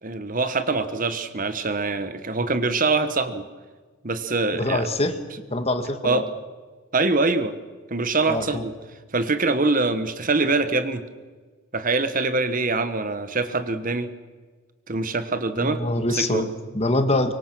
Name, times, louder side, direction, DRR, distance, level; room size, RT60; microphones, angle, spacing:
voice 1, 0.0-3.4 4.0-4.9 6.0-6.3 6.9-7.5 7.9-8.7 9.1-11.0 11.7-14.1 14.9-15.8 16.1-16.4, right 3 dB, 40° right, 11 dB, 1.2 m, -24 dB
voice 2, 4.5-5.2 5.5-6.3 8.3-8.6 15.6-17.3, left 1 dB, 30° left, 8 dB, 1.7 m, -24 dB
24.5 x 24.0 x 6.2 m, 1.4 s
head